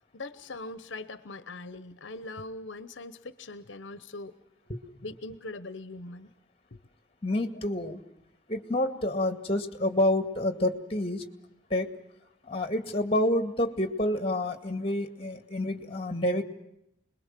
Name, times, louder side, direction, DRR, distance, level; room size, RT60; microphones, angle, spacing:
voice 1, 0.1-4.3 5.0-6.3 6.7-6.8, left 2 dB, 80° left, 13 dB, 1.0 m, -41 dB
voice 2, 7.2-8.0 8.5-11.2 11.7-11.9 12.4-16.4, left 1 dB, 30° left, 8 dB, 2.1 m, -28 dB
27.0 x 21.5 x 7.6 m, 0.82 s
head